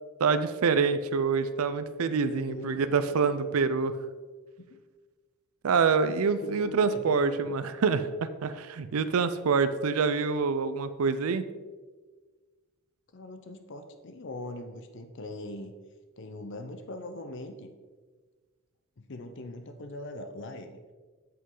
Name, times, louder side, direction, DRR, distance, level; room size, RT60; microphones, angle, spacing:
voice 1, 0.2-4.0 5.6-11.4, right 5 dB, 75° right, 12 dB, 0.4 m, -26 dB
voice 2, 2.0-3.6 4.6-4.8 6.1-6.2 6.4-7.5 13.1-15.8 16.2-17.7 19.0-20.8, left 1 dB, 55° left, 7 dB, 0.6 m, -41 dB
8.2 x 7.9 x 3.8 m, 1.4 s
head